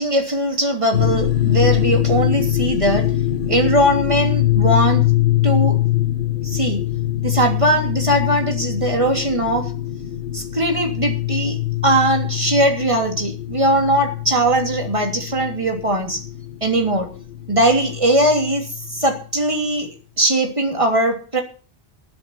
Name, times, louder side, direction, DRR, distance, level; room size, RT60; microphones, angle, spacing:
voice 1, 0.0-3.1 3.5-5.0 5.4-5.8 6.4-6.8 7.2-9.7 10.3-16.2 16.6-17.1 17.5-21.4, right 1 dB, 30° right, 2 dB, 3.1 m, -20 dB
sound 1, 0.9-19.2, left 14 dB, 75° left, 1.5 m, -23 dB
20.0 x 7.7 x 5.7 m, 0.39 s
omnidirectional pair, 1.1 m